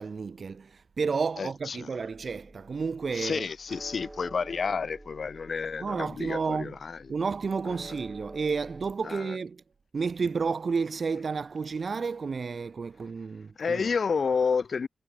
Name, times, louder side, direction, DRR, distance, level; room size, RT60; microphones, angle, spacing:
voice 1, 0.0-3.5 5.8-6.8 7.1-9.6 9.9-13.8, right 5 dB, 65° right, 2.8 m, -31 dB
voice 2, 1.4-1.9 3.1-7.0 9.0-9.4 13.6-14.9, left 5 dB, 75° left, 3.4 m, -30 dB
sound 1, 2.1-8.9, right 1 dB, 15° right, 8.0 m, -48 dB
wide cardioid pair, 120°, 0 cm